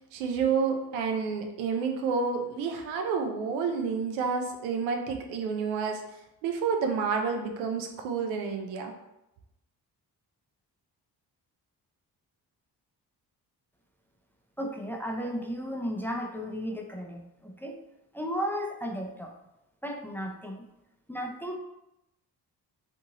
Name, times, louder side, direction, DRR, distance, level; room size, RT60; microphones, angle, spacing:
voice 1, 0.1-6.0 6.4-8.9, right 5 dB, 85° right, 4 dB, 0.5 m, -29 dB
voice 2, 14.6-17.8 18.1-19.3 19.8-20.7 21.1-21.6, equal, 5° left, 2 dB, 0.4 m, -34 dB
2.6 x 2.6 x 2.8 m, 0.89 s
hypercardioid pair, 45°, 46 cm